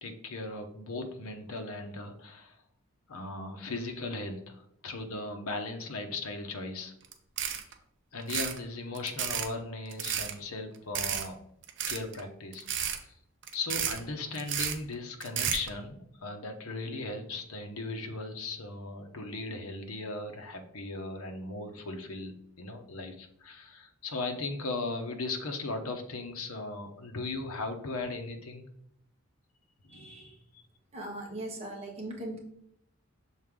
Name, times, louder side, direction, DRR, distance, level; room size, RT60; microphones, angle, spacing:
voice 1, 0.0-2.6 3.1-6.9 8.1-11.4 11.9-13.1 13.5-28.7 29.8-30.1, left 2 dB, 80° left, 5 dB, 0.9 m, -37 dB
sound 1, 7.0-7.1 7.4-7.7 8.2-8.6 8.9-9.5 9.9-10.3 10.9-11.3 11.6-12.2 12.5-13.0 13.4-14.0 14.4-14.8 15.2-15.7, right 9 dB, 55° right, 0.6 m, -32 dB
voice 2, 29.9-30.4 30.9-32.4, right 1 dB, 30° right, -1 dB, 1.4 m, -40 dB
6.3 x 4.0 x 3.7 m, 0.71 s
head